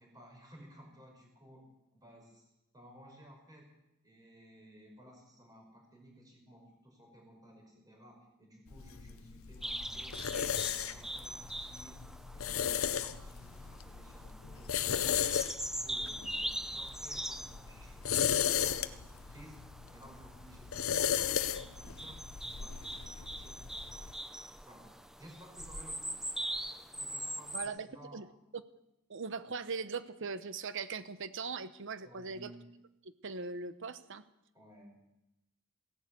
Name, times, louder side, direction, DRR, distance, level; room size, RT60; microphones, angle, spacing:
voice 1, 0.0-2.4 2.7-3.7 4.0-12.0 12.3-15.3 15.6-19.6 19.9-22.2 22.5-24.1 24.7-24.9 25.2-26.2 26.6-26.7 27.0-28.3 32.0-32.7 34.5-35.2, right 1 dB, 20° right, 0 dB, 5.5 m, -56 dB
sound 1, 8.7-24.1, left 8 dB, 70° left, 0.7 m, -36 dB
sound 2, 9.6-27.7, equal, ahead, 0.5 m, -43 dB
voice 2, 27.5-27.9 28.1-28.3 28.5-28.6 29.1-32.5 33.0-34.2, right 4 dB, 60° right, 13 dB, 0.9 m, -40 dB
16.0 x 11.0 x 8.4 m, 0.91 s
head